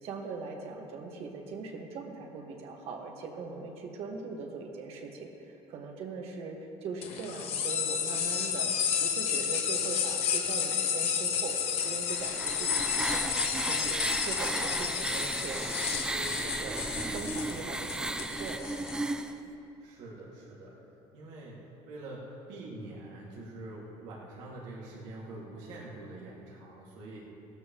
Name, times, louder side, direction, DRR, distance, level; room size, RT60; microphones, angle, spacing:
voice 1, 0.0-8.7 9.0-15.6 15.9-18.7, right 4 dB, 55° right, 2 dB, 1.6 m, -41 dB
sound 1, 7.0-19.0, left 7 dB, 60° left, 1.3 m, -31 dB
sound 2, 11.8-19.3, right 2 dB, 5° right, 0.4 m, -34 dB
voice 2, 19.8-20.8 21.1-21.6 21.9-27.2, right 2 dB, 85° right, -5 dB, 2.3 m, -45 dB
17.5 x 13.0 x 3.1 m, 2.9 s
cardioid pair, 155°, 12 cm